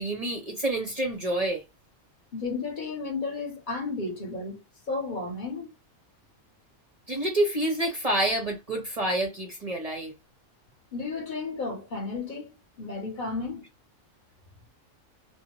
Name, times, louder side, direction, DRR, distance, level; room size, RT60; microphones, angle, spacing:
voice 1, 0.0-1.6 7.1-10.1, right 1 dB, 40° right, 0.6 m, -28 dB
voice 2, 2.3-5.7 10.9-13.7, left 3 dB, 40° left, 0.9 m, -33 dB
2.5 x 2.1 x 2.9 m
omnidirectional pair, 1.3 m